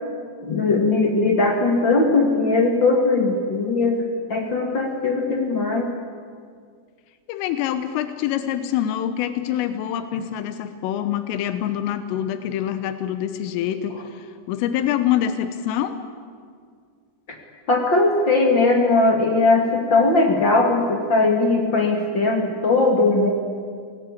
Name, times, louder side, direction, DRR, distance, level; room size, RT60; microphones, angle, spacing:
voice 1, 0.4-4.0 4.3-5.9 17.7-23.3, left 3 dB, 45° left, 1 dB, 1.6 m, -19 dB
voice 2, 7.3-16.0, left 10 dB, 85° left, 10 dB, 3.6 m, -25 dB
26.5 x 18.5 x 8.5 m, 2.1 s
omnidirectional pair, 5.7 m